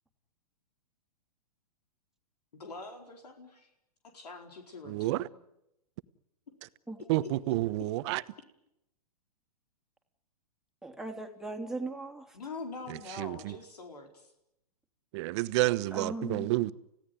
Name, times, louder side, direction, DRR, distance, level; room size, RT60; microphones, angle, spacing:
voice 1, 2.5-3.7 4.1-5.4 7.0-7.3 12.3-14.3, left 3 dB, 85° left, 4.5 m, -44 dB
voice 2, 4.8-5.3 7.1-8.2 12.9-13.6 15.1-16.7, right 18 dB, 45° right, 1.1 m, -30 dB
voice 3, 10.8-12.3 15.9-16.5, right 2 dB, ahead, 3.1 m, -38 dB
30.0 x 16.5 x 9.6 m
hypercardioid pair, 125°, 20 cm